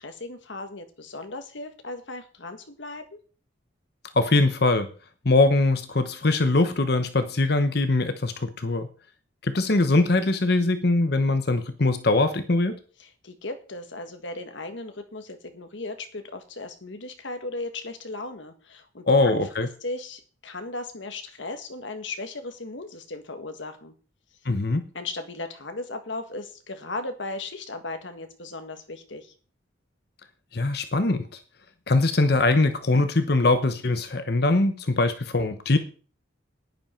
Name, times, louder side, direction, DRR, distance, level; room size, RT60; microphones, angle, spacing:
voice 1, 0.0-3.2 13.0-19.4 19.8-23.9 24.9-29.3, left 2 dB, 70° left, 7 dB, 1.7 m, -36 dB
voice 2, 4.1-4.9 5.2-8.9 9.4-12.8 19.1-19.7 24.4-24.8 30.5-31.4 31.9-35.8, left 2 dB, 55° left, 9 dB, 0.9 m, -22 dB
10.5 x 10.0 x 4.5 m, 0.39 s
head